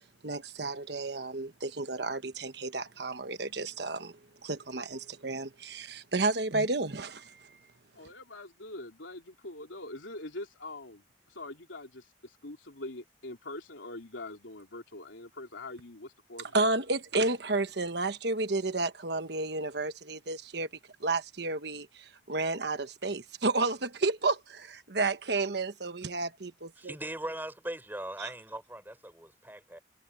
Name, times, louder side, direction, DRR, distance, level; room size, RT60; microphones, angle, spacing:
voice 1, 0.2-7.6 16.5-20.7 21.0-26.9 28.2-28.3, right 3 dB, 60° right, 1.2 m, -32 dB
voice 2, 7.9-16.6, left 2 dB, 85° left, 3.6 m, -44 dB
voice 3, 26.8-29.8, right 1 dB, 10° right, 3.8 m, -40 dB
head